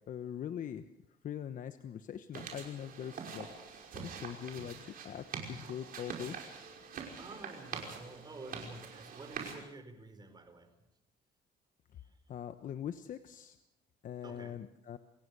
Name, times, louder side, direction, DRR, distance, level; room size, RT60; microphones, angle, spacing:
voice 1, 0.1-0.9 1.2-6.5 12.3-13.6 14.0-15.0, left 9 dB, 50° left, 9 dB, 1.1 m, -42 dB
sound 1, 2.3-9.5, right 6 dB, 60° right, 5.6 m, -45 dB
voice 2, 7.2-10.8 12.0-12.2 14.2-14.6, right 2 dB, 25° right, 8 dB, 4.9 m, -50 dB
28.5 x 16.0 x 6.9 m, 0.85 s
cardioid pair, 110°, 17 cm